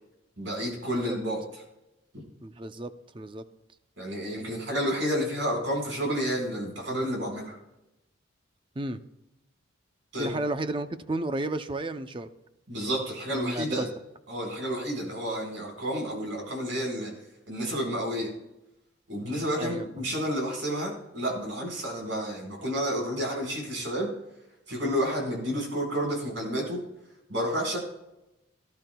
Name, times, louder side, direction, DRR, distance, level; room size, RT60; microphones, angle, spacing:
voice 1, 0.4-1.4 4.0-7.6 10.1-10.3 12.7-13.9 14.3-17.1 17.5-18.3 19.1-24.1 24.7-26.8 27.3-27.8, equal, 65° right, 0 dB, 4.7 m, -30 dB
voice 2, 2.4-3.5 8.8-9.0 10.2-12.3 13.3-13.9 19.6-19.9, right 2 dB, 25° right, 10 dB, 0.5 m, -32 dB
18.0 x 12.0 x 2.3 m, 0.91 s
head